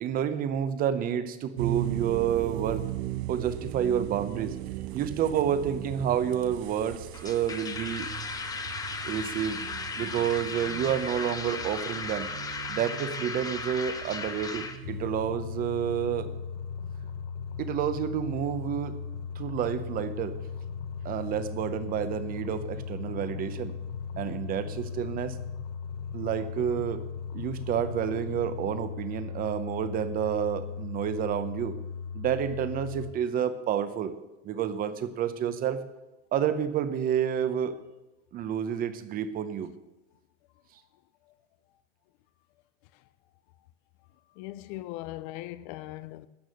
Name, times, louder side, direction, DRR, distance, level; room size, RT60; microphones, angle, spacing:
voice 1, 0.0-2.8 3.3-8.1 9.0-9.6 9.9-12.3 12.7-16.3 17.6-19.0 19.4-20.3 21.0-23.7 24.2-25.4 26.1-27.0 27.3-31.7 32.1-34.1 34.4-35.8 36.3-37.8 38.3-39.7, right 9 dB, 25° right, 0.7 m, -29 dB
sound 1, 1.6-15.1, right 14 dB, 70° right, 0.6 m, -38 dB
sound 2, 7.1-14.8, left 4 dB, 10° left, 0.7 m, -36 dB
sound 3, 14.8-33.1, left 6 dB, 70° left, 1.1 m, -37 dB
voice 2, 44.4-46.3, left 16 dB, 45° left, 0.5 m, -39 dB
13.0 x 8.9 x 6.5 m
supercardioid pair, 150°, 33 cm